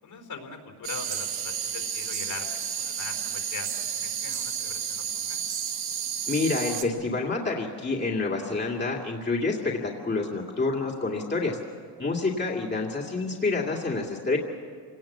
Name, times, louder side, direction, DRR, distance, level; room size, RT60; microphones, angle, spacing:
voice 1, 0.0-5.4, left 5 dB, 65° left, 4 dB, 4.5 m, -41 dB
sound 1, 0.8-6.8, right 8 dB, 75° right, 1.6 m, -31 dB
voice 2, 6.3-11.6 12.0-14.4, left 3 dB, 25° left, -2 dB, 2.4 m, -28 dB
27.0 x 18.5 x 7.4 m, 2.1 s
cardioid pair, 90°, 39 cm